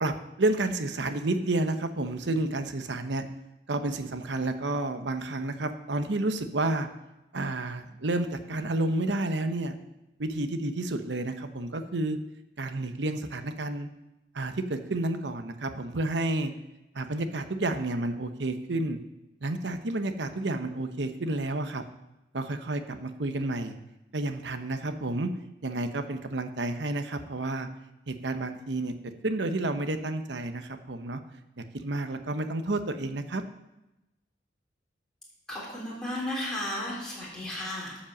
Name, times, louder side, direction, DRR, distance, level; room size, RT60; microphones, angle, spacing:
voice 1, 0.0-3.2 3.7-6.9 7.3-9.8 10.2-12.2 12.6-13.9 14.3-16.5 16.9-19.0 19.4-21.8 22.3-23.7 24.1-25.3 25.6-27.7 28.1-28.9 29.2-31.2 31.6-33.4, right 2 dB, 75° right, 8 dB, 0.9 m, -30 dB
voice 2, 35.5-38.0, left 1 dB, 5° left, -6 dB, 3.5 m, -34 dB
12.0 x 5.3 x 7.2 m, 0.97 s
head